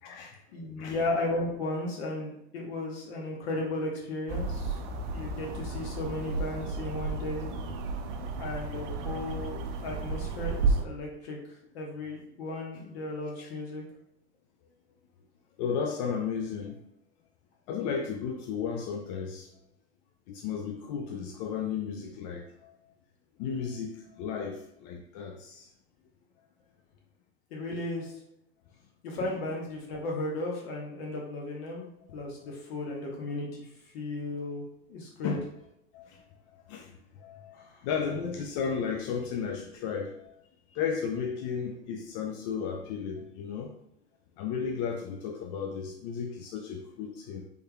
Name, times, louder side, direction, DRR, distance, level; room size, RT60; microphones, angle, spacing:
voice 1, 0.0-0.4 0.8-1.0 13.4-13.5 15.6-16.8 17.7-19.5 20.3-22.8 23.4-25.7 29.2-29.3 35.2-35.5 35.9-36.3 36.5-40.4 40.7-43.7 44.4-47.5, left 6 dB, 45° left, 3 dB, 0.4 m, -34 dB
voice 2, 0.5-4.8 5.1-7.5 8.4-11.4 11.7-13.8 27.5-28.1 29.0-31.9 32.1-33.7 33.9-34.6 34.9-35.4 37.5-37.8, left 2 dB, 60° left, -1 dB, 1.2 m, -35 dB
sound 1, 4.3-10.8, right 3 dB, 50° right, 0.5 m, -32 dB
3.3 x 3.2 x 2.3 m, 0.78 s
hypercardioid pair, 90°, 34 cm